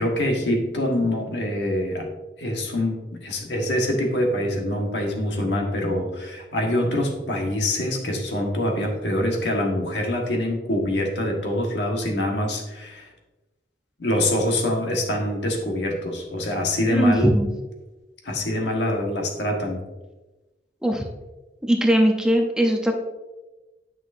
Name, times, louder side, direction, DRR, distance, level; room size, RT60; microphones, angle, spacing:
voice 1, 0.0-2.1 2.4-13.1 14.0-17.3 18.2-19.8, left 1 dB, 80° left, 1 dB, 1.4 m, -25 dB
voice 2, 16.9-17.5 20.8-21.0 21.6-22.9, equal, 5° right, 2 dB, 0.6 m, -20 dB
9.6 x 6.0 x 2.6 m, 1.1 s
head